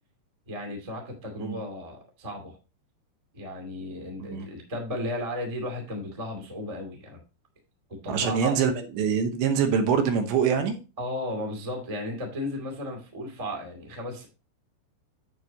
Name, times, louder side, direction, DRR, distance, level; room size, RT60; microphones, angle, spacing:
voice 1, 0.5-2.5 3.3-7.2 7.9-8.6 11.0-14.2, left 1 dB, 40° right, 2 dB, 0.4 m, -34 dB
voice 2, 8.1-10.8, right 6 dB, 75° right, 7 dB, 3.0 m, -25 dB
8.8 x 8.1 x 2.8 m, 0.30 s
omnidirectional pair, 5.5 m